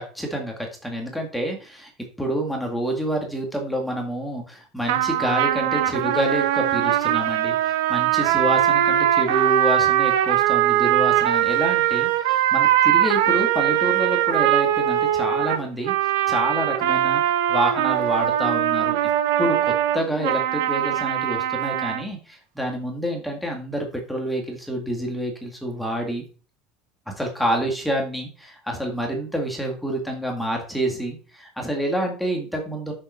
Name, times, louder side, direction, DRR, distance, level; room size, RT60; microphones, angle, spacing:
voice 1, 0.0-1.9 2.2-17.2 17.5-19.0 19.4-26.2 27.1-32.9, right 1 dB, ahead, 1 dB, 1.9 m, -28 dB
sound 1, 4.9-22.0, right 12 dB, 90° right, 1.0 m, -21 dB
7.6 x 6.8 x 5.6 m, 0.37 s
cardioid pair, 175°, 0 cm